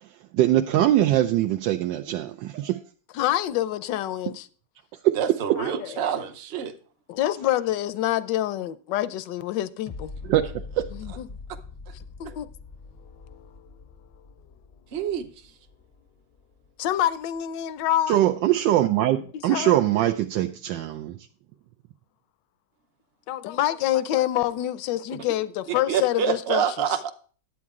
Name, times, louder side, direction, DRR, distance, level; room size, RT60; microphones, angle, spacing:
voice 1, 0.0-2.8 5.0-5.6 10.3-10.5 10.8-10.9 18.1-21.2, right 13 dB, 85° right, 1.3 m, -22 dB
voice 2, 3.1-4.5 5.6-6.3 7.1-10.1 10.9-11.3 12.2-12.5 13.3-13.6 16.8-18.2 19.5-19.8 23.3-26.6, left 13 dB, 80° left, 1.3 m, -27 dB
voice 3, 5.2-6.7 14.9-15.3 25.9-27.1, right 8 dB, 45° right, 0.8 m, -26 dB
sound 1, 9.9-16.9 17.4-17.5, left 4 dB, 30° left, 0.4 m, -43 dB
11.0 x 8.6 x 3.6 m
omnidirectional pair, 2.0 m